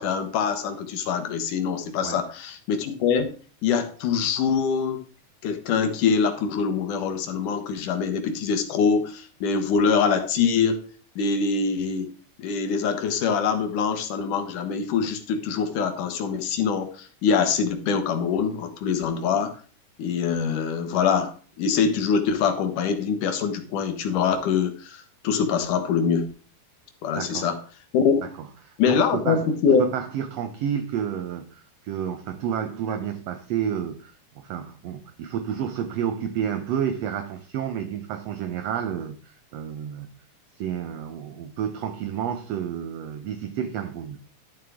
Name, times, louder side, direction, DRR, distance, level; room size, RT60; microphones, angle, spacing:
voice 1, 0.0-3.3 3.6-5.0 5.4-10.8 11.2-12.1 12.4-19.6 20.0-26.3 27.0-27.6 27.9-28.2 28.8-29.9, left 6 dB, 75° left, 2.6 m, -24 dB
voice 2, 27.1-27.5 28.2-28.3 28.6-29.5 29.8-40.1 40.6-44.2, right 8 dB, 70° right, 1.6 m, -30 dB
12.0 x 7.4 x 3.5 m
omnidirectional pair, 3.8 m